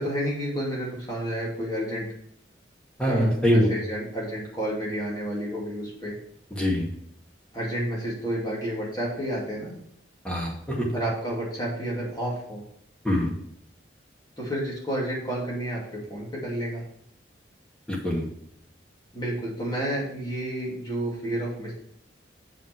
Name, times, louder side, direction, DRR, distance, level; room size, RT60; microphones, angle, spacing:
voice 1, 0.0-2.1 3.0-6.1 7.5-9.8 10.9-12.6 14.4-16.8 19.1-21.7, right 1 dB, 20° left, -5 dB, 2.7 m, -30 dB
voice 2, 3.0-3.7 6.5-6.9 10.2-10.9 13.0-13.3 17.9-18.2, equal, 5° left, -3 dB, 1.9 m, -24 dB
6.9 x 5.8 x 4.6 m, 0.71 s
head